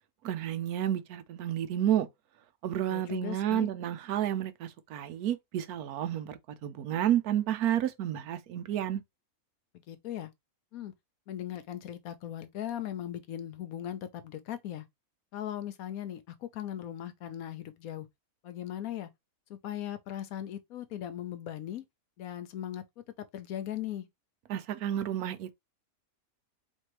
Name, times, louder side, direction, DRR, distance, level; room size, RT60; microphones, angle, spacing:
voice 1, 0.2-2.1 2.6-9.0 24.5-25.6, right 11 dB, 85° right, 1.2 m, -31 dB
voice 2, 2.9-3.7 9.9-10.3 10.7-10.9 11.3-14.9 15.3-18.1 18.4-19.1 19.5-21.8 22.2-22.8 23.2-24.1, left 11 dB, 75° left, 1.1 m, -38 dB
4.5 x 3.2 x 3.0 m
omnidirectional pair, 1.6 m